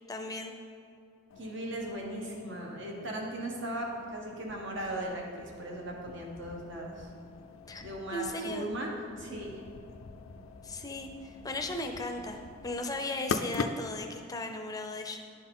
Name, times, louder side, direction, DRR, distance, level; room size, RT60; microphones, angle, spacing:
voice 1, 0.1-0.5 7.7-7.8 8.1-8.7 10.6-15.2, left 2 dB, 20° left, 4 dB, 0.5 m, -36 dB
sound 1, 1.3-14.1, left 4 dB, 80° left, 0.4 m, -43 dB
voice 2, 1.4-7.1 7.8-9.6, right 1 dB, 65° right, -1 dB, 1.2 m, -38 dB
10.5 x 4.3 x 3.7 m, 2.4 s
head